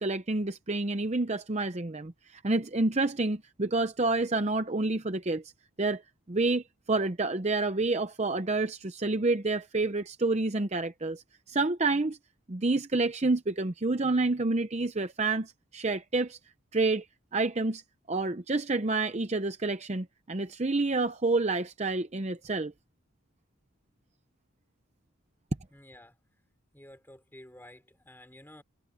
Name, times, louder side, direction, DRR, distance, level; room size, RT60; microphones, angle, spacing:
voice 1, 0.0-5.4 5.8-6.0 6.3-11.2 11.5-12.2 12.5-16.4 16.7-17.0 17.3-17.8 18.1-22.7, right 3 dB, 30° right, 0.7 m, -28 dB
voice 2, 25.7-26.2 26.7-28.6, left 1 dB, 10° left, 4.6 m, -52 dB
head